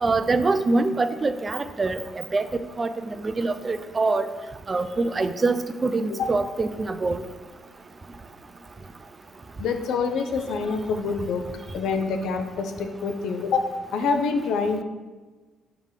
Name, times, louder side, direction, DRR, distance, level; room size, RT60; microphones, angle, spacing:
voice 1, 0.0-2.5 2.8-2.9 3.2-4.3 4.7-7.2, right 3 dB, 30° right, 10 dB, 0.4 m, -24 dB
voice 2, 9.6-11.5 11.7-14.8, left 4 dB, 80° left, 6 dB, 0.6 m, -26 dB
4.7 x 3.8 x 5.7 m, 1.3 s
cardioid pair, 90°, 0 cm